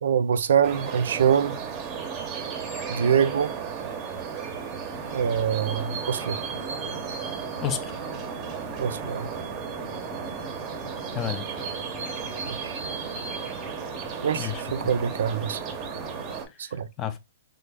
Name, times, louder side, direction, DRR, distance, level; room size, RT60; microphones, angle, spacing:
voice 1, 0.0-1.6 2.9-3.5 5.1-6.4 8.8-9.3 12.5-12.8 14.2-15.6 16.6-16.9, right 8 dB, 75° right, 0.3 m, -24 dB
sound 1, 0.6-16.5, right 6 dB, 25° right, 0.6 m, -34 dB
sound 2, 4.9-16.4, left 4 dB, 80° left, 0.8 m, -45 dB
voice 2, 7.6-8.0 11.1-11.5 14.3-14.9 16.5-17.2, left 9 dB, 25° left, 0.4 m, -32 dB
3.3 x 2.1 x 3.3 m
hypercardioid pair, 150°, 0 cm